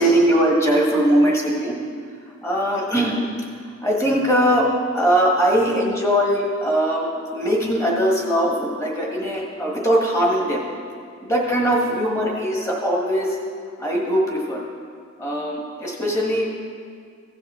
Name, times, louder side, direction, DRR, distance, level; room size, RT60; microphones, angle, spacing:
voice 1, 0.0-1.8 2.4-3.2 3.8-4.7 4.9-7.1 7.3-10.7 11.3-13.3 13.8-14.6 15.2-16.5, equal, 15° left, -2 dB, 1.5 m, -20 dB
16.0 x 6.8 x 3.7 m, 2.2 s
head